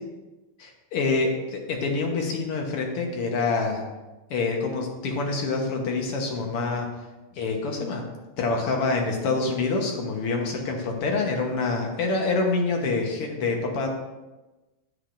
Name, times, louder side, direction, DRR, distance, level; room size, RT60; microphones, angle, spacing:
voice 1, 0.6-3.8 4.3-6.9 7.4-8.1 8.4-13.9, left 3 dB, 85° left, 1 dB, 2.1 m, -26 dB
9.6 x 7.9 x 2.6 m, 1.1 s
omnidirectional pair, 2.4 m